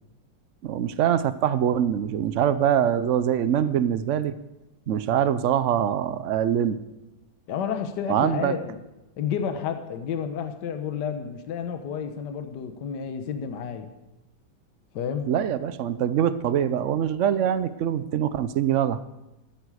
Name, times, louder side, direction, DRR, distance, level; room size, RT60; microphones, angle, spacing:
voice 1, 0.6-4.4 4.9-6.8 8.1-8.5 15.3-19.0, right 9 dB, 75° right, 13 dB, 0.6 m, -24 dB
voice 2, 7.5-8.8 9.2-13.9 14.9-15.3, left 7 dB, 70° left, 7 dB, 1.5 m, -30 dB
14.0 x 13.0 x 4.9 m, 0.98 s
omnidirectional pair, 2.0 m